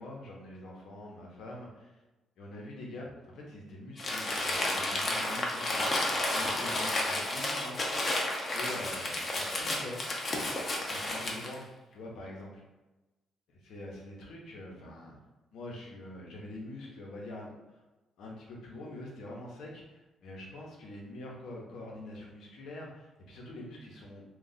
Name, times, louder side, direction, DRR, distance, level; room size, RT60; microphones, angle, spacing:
voice 1, 0.0-2.0 2.4-5.9 6.3-7.8 8.5-10.0 10.9-12.6 13.7-15.2 15.5-17.8 18.2-24.2, left 1 dB, 75° left, -2 dB, 0.9 m, -45 dB
Crumpling crinkling, 4.0-11.6, left 1 dB, 40° left, 0.7 m, -32 dB
2.5 x 2.3 x 4.0 m, 1.1 s
cardioid pair, 90°, 0 cm